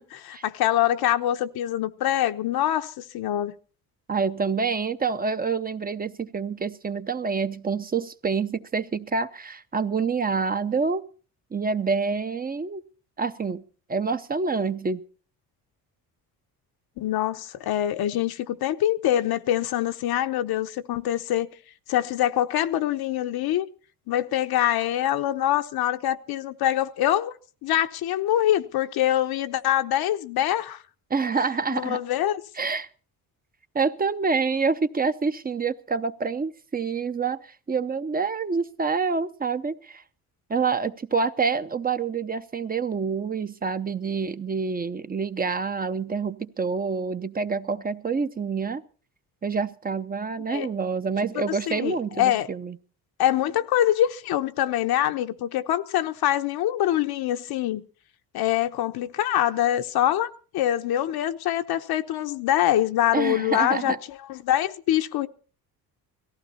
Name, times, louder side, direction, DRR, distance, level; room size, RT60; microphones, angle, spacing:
voice 1, 0.0-3.5 17.0-21.5 21.9-23.7 24.1-27.3 27.6-30.8 31.7-32.4 50.5-50.7 51.3-52.5 53.2-57.8 58.3-65.3, left 12 dB, 70° left, 1.0 m, -24 dB
voice 2, 4.1-11.0 11.5-12.8 13.2-13.6 13.9-15.0 31.1-32.0 32.6-32.9 33.7-40.0 40.5-48.8 49.4-52.8 63.1-64.0, right 5 dB, 25° right, 0.7 m, -27 dB
17.5 x 15.0 x 4.2 m
cardioid pair, 115°, 38 cm